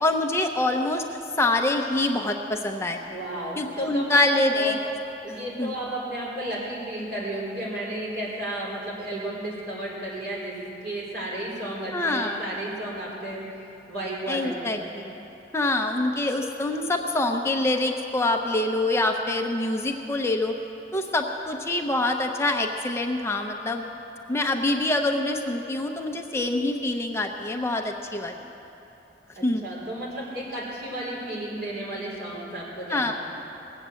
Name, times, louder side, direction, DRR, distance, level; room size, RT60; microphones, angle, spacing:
voice 1, 0.0-3.0 3.6-4.8 5.6-5.8 11.9-12.4 14.3-15.2 15.5-20.5 20.9-23.9 24.3-28.4 29.4-29.7 32.9-33.1, left 2 dB, 15° left, 3 dB, 0.6 m, -25 dB
voice 2, 3.1-4.8 5.2-10.6 10.8-13.4 13.9-14.7 29.4-33.1, right 1 dB, 60° right, -5 dB, 4.3 m, -33 dB
19.0 x 8.1 x 7.5 m, 3.0 s
head